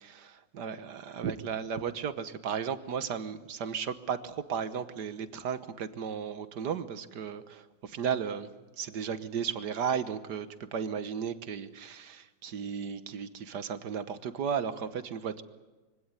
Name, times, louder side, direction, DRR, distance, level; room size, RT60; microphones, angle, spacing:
voice 1, 0.0-8.5 8.8-15.4, right 7 dB, 65° right, 13 dB, 1.6 m, -35 dB
24.0 x 17.0 x 9.6 m, 1.2 s
omnidirectional pair, 2.1 m